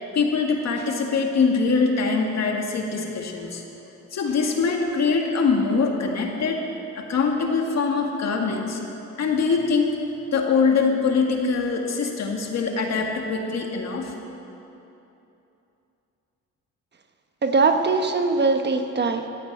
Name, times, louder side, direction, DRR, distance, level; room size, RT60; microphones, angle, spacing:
voice 1, 0.1-3.6 4.1-8.8 9.2-10.0 10.3-14.3, left 4 dB, 60° left, 2 dB, 2.0 m, -23 dB
voice 2, 17.4-19.3, right 4 dB, 35° right, 6 dB, 1.1 m, -21 dB
13.5 x 8.9 x 8.5 m, 2.9 s
cardioid pair, 90°, 30 cm